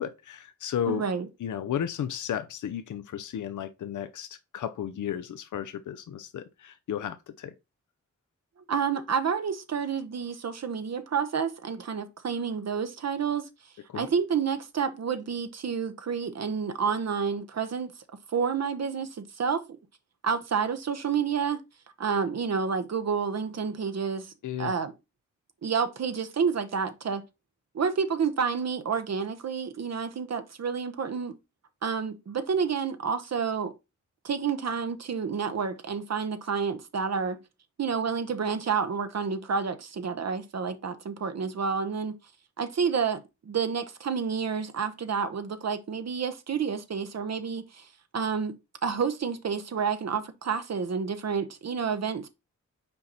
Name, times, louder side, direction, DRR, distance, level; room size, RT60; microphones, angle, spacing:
voice 1, 0.0-1.1 1.4-7.5 13.9-14.1 24.4-24.7, left 9 dB, 85° left, 0.6 m, -34 dB
voice 2, 0.9-1.3 8.7-13.5 13.9-17.9 18.3-19.6 20.2-21.6 22.0-24.3 24.6-24.9 25.6-27.2 27.7-31.3 31.8-33.7 34.2-37.4 37.8-42.2 42.6-47.9 48.1-52.3, right 6 dB, 60° right, 0.8 m, -29 dB
5.5 x 4.2 x 4.0 m
cardioid pair, 70°, 30 cm